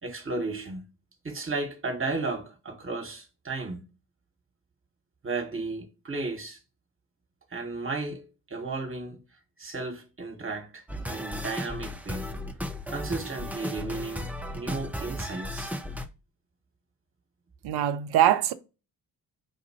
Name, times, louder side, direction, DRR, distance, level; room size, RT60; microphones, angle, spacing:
voice 1, 0.0-0.8 1.2-3.8 5.2-6.6 7.5-9.2 9.6-12.3 12.9-14.3 14.5-15.7, right 3 dB, 30° right, 1.5 m, -34 dB
sound 1, 10.9-16.1, left 1 dB, 5° right, 0.7 m, -35 dB
voice 2, 17.6-18.5, right 11 dB, 60° right, 0.6 m, -22 dB
5.2 x 2.5 x 2.8 m
hypercardioid pair, 40°, 46 cm